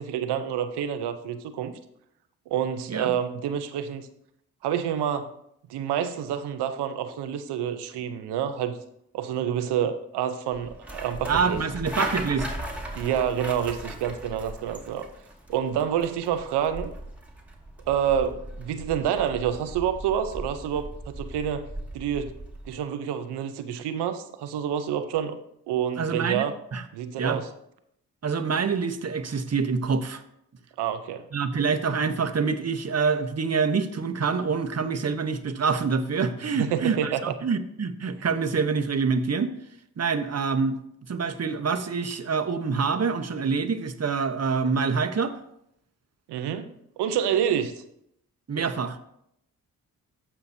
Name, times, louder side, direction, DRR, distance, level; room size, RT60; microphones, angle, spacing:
voice 1, 0.0-1.7 2.5-4.1 4.6-5.3 5.7-8.7 9.1-11.6 12.9-15.0 15.5-16.9 17.9-21.7 21.9-22.3 22.7-25.4 25.7-26.5 26.9-27.5 30.8-31.2 36.5-37.3 46.3-46.7 47.0-47.8, right 9 dB, 85° right, 10 dB, 0.8 m, -28 dB
sound 1, 10.5-22.8, right 1 dB, 5° right, 2.1 m, -38 dB
voice 2, 11.3-12.5 26.0-26.8 27.2-27.4 28.2-30.2 31.3-39.5 40.0-40.8 41.1-45.3 48.5-49.0, right 5 dB, 40° right, 8 dB, 1.0 m, -26 dB
14.5 x 5.7 x 2.8 m, 0.76 s
supercardioid pair, 45°, 39 cm